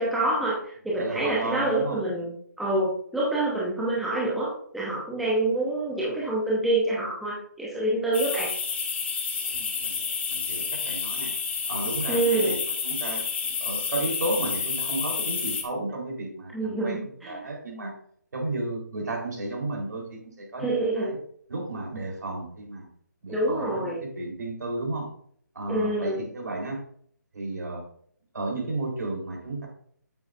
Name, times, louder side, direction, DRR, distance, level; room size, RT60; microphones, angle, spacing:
voice 1, 0.0-8.5 12.1-12.5 16.5-17.4 20.6-21.1 23.3-24.0 25.7-26.2, right 2 dB, ahead, -6 dB, 0.7 m, -27 dB
voice 2, 1.0-2.0 9.5-10.0 10.3-11.3 11.7-12.6 12.8-13.2 13.6-17.9 18.3-21.2 21.5-22.9 23.2-25.1 25.5-26.8 27.3-27.8 28.3-29.7, right 2 dB, 70° right, -1 dB, 4.1 m, -33 dB
sound 1, 8.1-15.6, left 6 dB, 35° left, 1.2 m, -30 dB
9.1 x 8.6 x 2.6 m, 0.62 s
hypercardioid pair, 175°, 10 cm